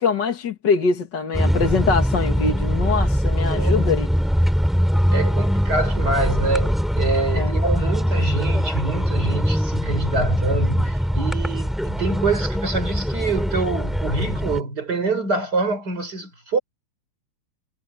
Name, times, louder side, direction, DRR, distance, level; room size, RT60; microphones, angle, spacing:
voice 1, 0.0-4.1 7.3-7.6, left 5 dB, 55° left, 2.5 m, -23 dB
sound 1, 1.3-14.6, equal, ahead, 6.8 m, -22 dB
voice 2, 3.5-3.9 5.1-16.6, right 3 dB, 50° right, 4.9 m, -26 dB
omnidirectional pair, 2.2 m